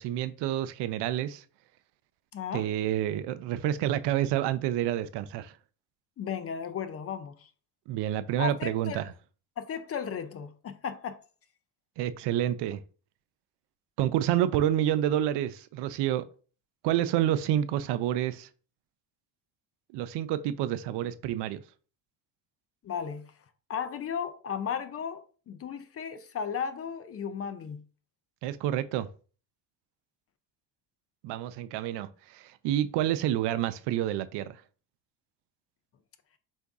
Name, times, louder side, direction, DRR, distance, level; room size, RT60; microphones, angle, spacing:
voice 1, 0.0-1.4 2.5-5.6 7.9-9.1 12.0-12.8 14.0-16.2 16.8-18.5 19.9-21.6 28.4-29.1 31.2-34.6, right 12 dB, 65° right, 0.5 m, -28 dB
voice 2, 2.3-2.7 6.2-7.5 8.4-9.0 9.6-11.2 22.8-23.3 23.7-27.8, left 7 dB, 35° left, 0.5 m, -35 dB
4.6 x 2.7 x 3.5 m
supercardioid pair, 95°, 45 cm